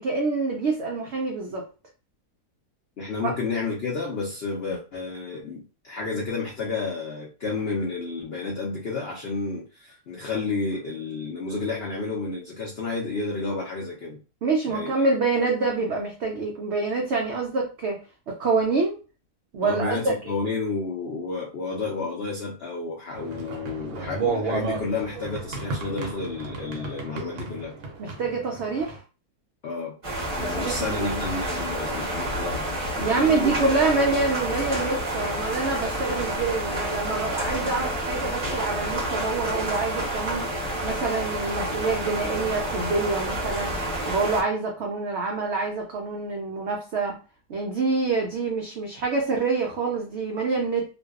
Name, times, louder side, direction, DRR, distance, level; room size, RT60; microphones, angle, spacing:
voice 1, 0.0-1.7 14.4-18.0 18.3-19.0 19.5-20.0 28.0-29.0 30.4-31.2 33.0-40.4 40.8-43.7 44.1-47.2 47.5-50.8, right 3 dB, 85° right, 0 dB, 0.6 m, -26 dB
voice 2, 3.0-14.2 14.7-15.1 19.6-27.7 29.6-30.0 30.3-33.6, left 3 dB, 80° left, -2 dB, 0.5 m, -31 dB
sound 1, 23.2-29.0, right 4 dB, 60° right, 0.8 m, -33 dB
sound 2, 30.0-44.4, right 1 dB, 30° right, 0.6 m, -29 dB
2.5 x 2.3 x 2.3 m, 0.33 s
omnidirectional pair, 1.7 m